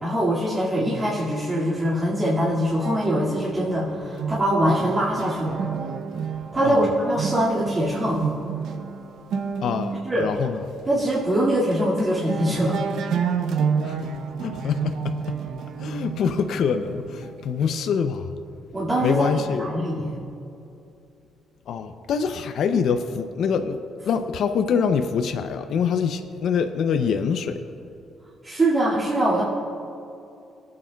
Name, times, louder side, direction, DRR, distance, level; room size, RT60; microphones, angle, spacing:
voice 1, 0.0-5.6 6.5-8.2 10.0-10.3 10.9-12.8 18.7-20.2 28.4-29.4, right 1 dB, 25° right, -9 dB, 2.1 m, -23 dB
sound 1, 2.8-10.5 11.1-11.3 11.6-12.0 12.3-17.9, right 6 dB, 75° right, 0.6 m, -30 dB
voice 2, 9.6-10.6 13.8-14.1 14.4-15.4 15.8-18.3 19.0-19.7 21.7-23.8 24.1-27.6, left 6 dB, 70° left, 8 dB, 0.5 m, -25 dB
19.0 x 8.7 x 2.3 m, 2.7 s
cardioid pair, 90°, 0 cm